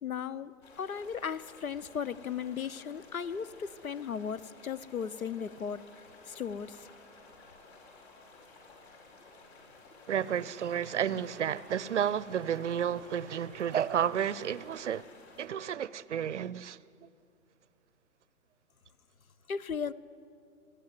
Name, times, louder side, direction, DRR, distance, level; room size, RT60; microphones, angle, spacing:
voice 1, 0.0-6.9 19.5-19.9, left 7 dB, 70° left, 0.9 m, -36 dB
sound 1, 0.6-15.5, left 3 dB, 45° left, 4.9 m, -55 dB
voice 2, 10.1-15.1 15.4-16.8, right 9 dB, 55° right, 0.6 m, -31 dB
28.0 x 10.5 x 9.7 m
figure-of-eight pair, 125°, 43 cm